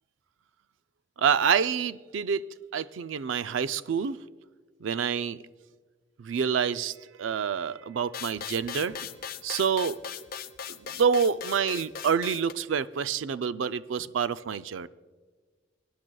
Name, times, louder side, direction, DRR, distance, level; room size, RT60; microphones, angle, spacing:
voice 1, 1.2-2.5 2.7-4.2 4.8-5.4 6.2-9.2 9.4-10.0 10.7-14.9, right 7 dB, 80° right, 14 dB, 0.4 m, -27 dB
sound 1, 8.1-12.5, left 8 dB, 50° left, 0.6 m, -39 dB
22.5 x 10.5 x 2.3 m, 1.4 s
head